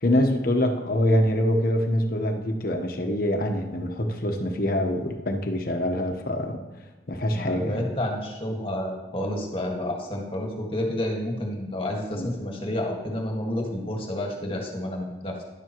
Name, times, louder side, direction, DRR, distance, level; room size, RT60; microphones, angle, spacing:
voice 1, 0.0-6.6 7.1-7.8 12.2-12.3, left 1 dB, 55° left, 4 dB, 1.1 m, -25 dB
voice 2, 7.3-15.4, left 1 dB, 30° left, 0 dB, 1.8 m, -30 dB
12.0 x 11.0 x 3.1 m, 1.2 s
head